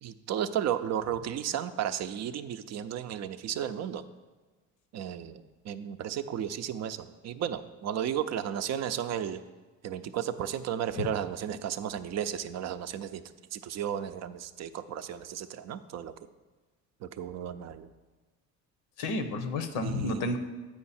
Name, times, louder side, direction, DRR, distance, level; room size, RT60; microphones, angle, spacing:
voice 1, 0.0-4.0 4.9-9.4 9.8-13.2 13.5-16.1 17.0-17.9 19.8-20.4, right 9 dB, 50° right, 11 dB, 0.5 m, -34 dB
voice 2, 19.0-20.4, left 2 dB, 80° left, 8 dB, 0.8 m, -31 dB
8.4 x 4.7 x 4.2 m, 1.3 s
supercardioid pair, 80°, 34 cm